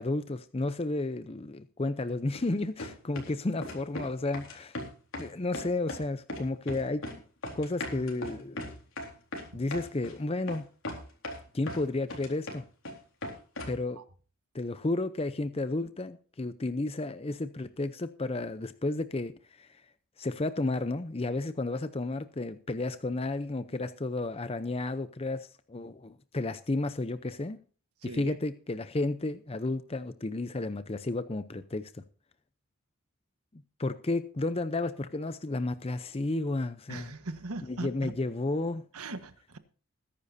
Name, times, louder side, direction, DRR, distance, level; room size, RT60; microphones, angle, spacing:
voice 1, 0.0-4.8 5.2-7.1 7.5-8.8 9.5-10.6 11.5-12.6 13.7-14.0 14.5-19.8 20.2-27.6 28.0-32.0 33.5-37.1 37.6-38.8, left 2 dB, 25° left, 0.6 m, -32 dB
sound 1, 2.3-2.5 2.8-3.3 3.6-4.1 4.3-5.3 5.5-6.0 6.3-7.2 7.4-10.1 10.5-10.6 10.8-11.8 12.1-12.9 13.2-13.8, left 1 dB, 60° left, 3.9 m, -38 dB
voice 2, 28.0-28.4 36.9-38.1 38.9-39.6, right 2 dB, 80° right, 1.4 m, -40 dB
20.5 x 10.5 x 2.7 m
head